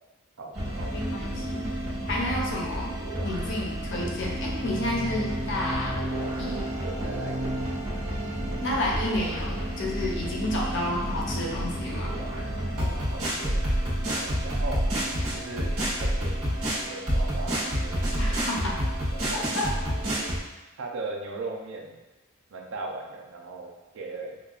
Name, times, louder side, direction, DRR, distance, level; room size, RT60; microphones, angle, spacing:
voice 1, 0.4-1.0 6.1-7.7 8.2-8.6 12.7-14.8 15.3-15.7 16.0-18.4 19.1-19.6 20.8-22.0 22.5-24.4, right 3 dB, 65° right, 1 dB, 0.5 m, -39 dB
sound 1, 0.5-20.4, equal, 80° right, 1.3 m, -30 dB
voice 2, 0.9-1.7 2.0-2.9 3.2-6.0 6.4-6.6 8.6-12.1 18.2-18.8 19.6-19.7, left 1 dB, 60° left, -3 dB, 0.7 m, -30 dB
sound 2, 7.4-17.6, left 1 dB, 35° left, 0.3 m, -42 dB
5.1 x 2.3 x 2.3 m, 1.1 s
head